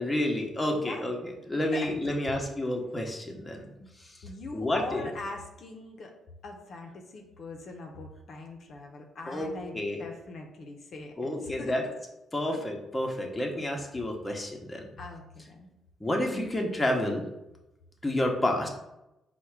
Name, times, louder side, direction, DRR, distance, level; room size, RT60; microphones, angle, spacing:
voice 1, 0.0-3.6 4.0-4.2 4.5-5.1 9.3-10.0 11.2-11.8 12.3-14.8 16.0-17.2 18.0-18.7, left 1 dB, 15° left, 1 dB, 0.7 m, -30 dB
voice 2, 0.7-1.1 1.7-2.4 3.8-3.9 4.2-6.1 6.4-11.8 12.5-12.6 15.0-15.7 16.3-16.6, left 3 dB, 60° left, 2 dB, 0.5 m, -42 dB
4.5 x 2.1 x 4.6 m, 0.92 s
cardioid pair, 90°, 0 cm